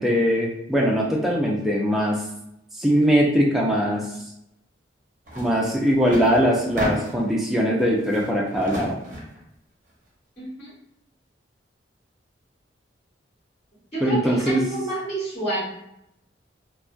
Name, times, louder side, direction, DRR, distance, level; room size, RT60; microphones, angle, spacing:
voice 1, 0.0-2.2 2.8-4.0 5.4-8.9 14.0-14.6, equal, ahead, -3 dB, 0.3 m, -21 dB
sound 1, 5.3-5.5 5.8-7.3 7.8-9.4, equal, 45° right, 0.7 m, -31 dB
voice 2, 10.4-10.7 13.9-15.6, right 1 dB, 35° left, -12 dB, 1.3 m, -29 dB
2.6 x 2.1 x 2.2 m, 0.80 s
head